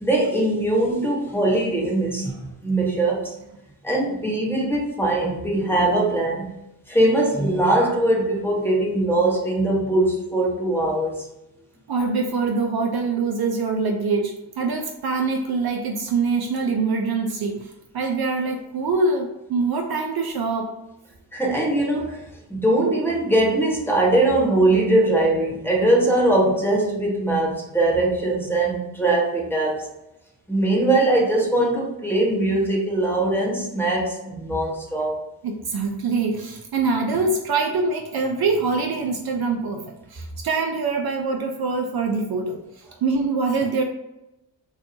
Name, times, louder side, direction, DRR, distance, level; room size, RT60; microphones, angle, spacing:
voice 1, 0.0-3.3 3.8-6.5 6.9-11.2 21.3-29.9 30.5-35.2, right 1 dB, 5° left, -2 dB, 0.8 m, -21 dB
voice 2, 11.9-20.8 35.4-43.8, right 4 dB, 55° right, 2 dB, 0.5 m, -24 dB
2.7 x 2.2 x 2.6 m, 0.92 s
supercardioid pair, 45°, 46 cm